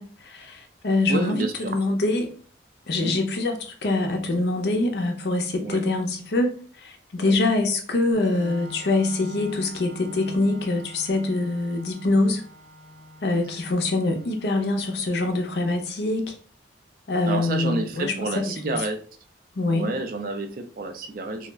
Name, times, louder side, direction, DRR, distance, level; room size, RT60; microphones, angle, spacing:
voice 1, 0.0-2.3 2.9-12.4 13.2-16.4 17.1-18.1 18.6-18.8 19.6-19.9, left 2 dB, 65° left, 4 dB, 0.5 m, -24 dB
voice 2, 1.1-1.8 2.9-3.2 5.6-5.8 7.2-7.4 17.3-19.0 19.7-21.5, right 2 dB, 50° right, 7 dB, 0.3 m, -30 dB
Organ, 8.1-15.6, equal, ahead, 0.6 m, -45 dB
2.3 x 2.0 x 3.3 m, 0.43 s
head